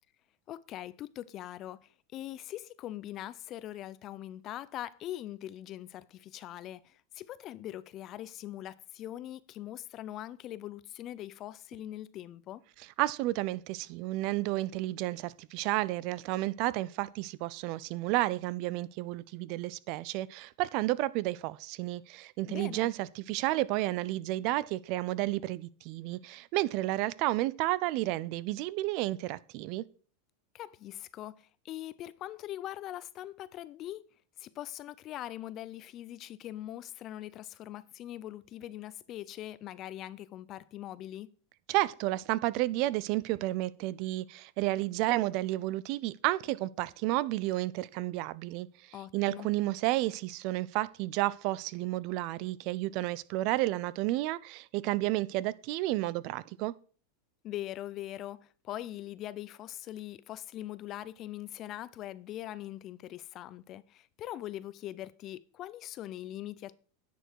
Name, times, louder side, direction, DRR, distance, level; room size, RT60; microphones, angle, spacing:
voice 1, 0.5-12.6 22.5-22.9 30.5-34.0 34.4-41.3 48.9-49.5 57.4-66.7, left 13 dB, 40° left, 0.5 m, -42 dB
voice 2, 13.0-29.8 41.7-48.7 49.1-56.7, right 17 dB, 55° right, 0.5 m, -31 dB
10.0 x 7.0 x 4.6 m
supercardioid pair, 130°, 0 cm